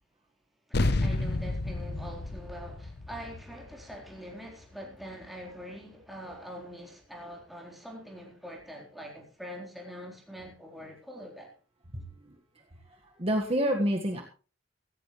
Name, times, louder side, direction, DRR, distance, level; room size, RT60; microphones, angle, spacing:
sound 1, 0.7-5.5, left 2 dB, 60° left, 0.9 m, -32 dB
voice 1, 0.7-11.5, equal, ahead, 4.0 m, -44 dB
voice 2, 11.9-12.4 12.9-14.2, equal, 30° right, 1.6 m, -29 dB
16.0 x 15.5 x 3.2 m
head